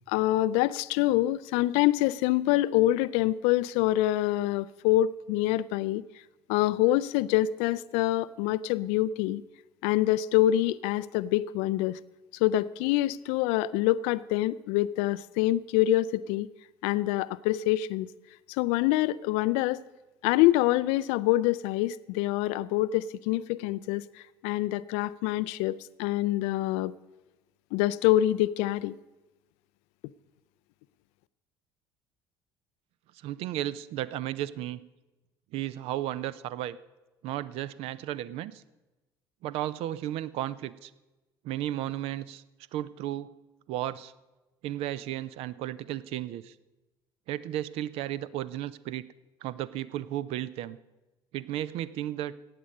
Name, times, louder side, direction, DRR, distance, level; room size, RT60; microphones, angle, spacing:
voice 1, 0.1-6.0 6.5-9.4 9.8-12.0 12.3-16.5 16.8-18.1 18.5-19.8 20.2-26.9 27.7-29.0, left 15 dB, 55° left, 18 dB, 0.4 m, -26 dB
voice 2, 33.1-34.8 35.5-36.8 37.2-38.6 39.4-40.9 41.4-42.4 42.7-43.3 43.7-44.1 44.6-46.5 47.3-49.0 49.4-50.8 51.3-52.3, right 13 dB, 50° right, 17 dB, 0.5 m, -34 dB
15.5 x 9.4 x 5.3 m, 1.1 s
figure-of-eight pair, 55°, 13 cm